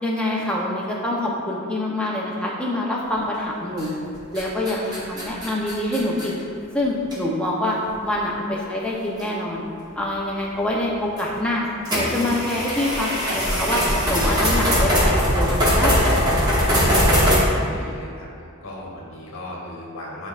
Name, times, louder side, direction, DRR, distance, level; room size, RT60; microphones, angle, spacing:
voice 1, 0.0-3.9 4.3-6.3 6.7-7.8 8.0-9.6 10.0-16.0 16.7-16.9, left 1 dB, 5° left, -4 dB, 0.7 m, -25 dB
sound 1, 3.8-4.1 4.4-6.3 7.1-7.2 7.8-7.9 9.2-9.3 11.1-11.3 11.9-17.4, equal, 20° right, 1.0 m, -20 dB
voice 2, 16.7-18.3 18.6-20.3, left 1 dB, 65° left, -4 dB, 1.2 m, -37 dB
9.3 x 4.2 x 2.5 m, 2.4 s
head